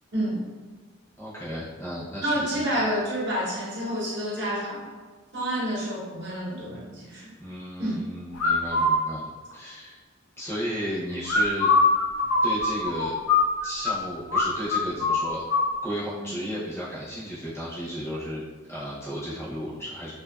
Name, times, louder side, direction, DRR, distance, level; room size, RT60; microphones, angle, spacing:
voice 1, 0.1-0.5 2.2-4.9 5.3-7.3 7.8-8.0 16.2-16.3, equal, 55° right, -7 dB, 0.9 m, -29 dB
voice 2, 1.2-2.6 7.4-10.0 10.4-11.7 12.4-13.2 13.6-15.4 15.8-18.4 18.7-20.1, equal, 15° left, -9 dB, 0.6 m, -34 dB
sound 1, 8.4-9.0 11.3-14.0 14.3-14.5 14.7-15.7, left 3 dB, 85° left, 0.4 m, -22 dB
2.6 x 2.3 x 2.3 m, 1.4 s
head